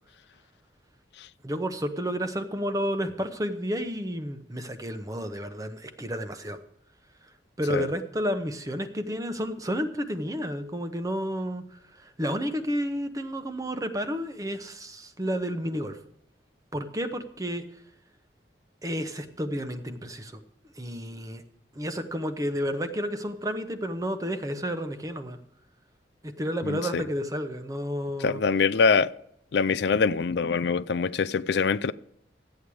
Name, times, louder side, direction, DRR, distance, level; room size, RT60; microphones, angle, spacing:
voice 1, 1.4-6.6 7.6-11.6 12.0-16.0 16.7-17.6 18.8-20.3 20.8-21.4 21.7-25.4 26.2-28.4, equal, 20° right, 1.0 m, -31 dB
voice 2, 26.6-27.0 28.2-29.1 29.5-31.9, left 5 dB, 65° left, 0.4 m, -24 dB
13.0 x 8.6 x 4.8 m
head